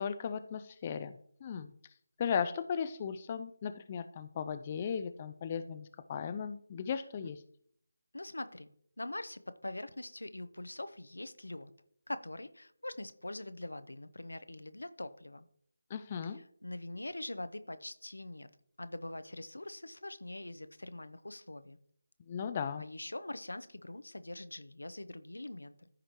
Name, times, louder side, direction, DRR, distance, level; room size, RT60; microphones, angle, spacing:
voice 1, 0.0-1.7 2.2-7.4 15.9-16.4 22.3-22.8, left 7 dB, 30° left, 10 dB, 0.4 m, -36 dB
voice 2, 8.1-8.7 9.0-11.7 12.1-15.5 16.3-18.5 18.8-21.8 22.8-25.9, left 1 dB, 80° left, 12 dB, 0.7 m, -43 dB
14.5 x 5.0 x 3.0 m, 0.64 s
figure-of-eight pair, 160°, 0 cm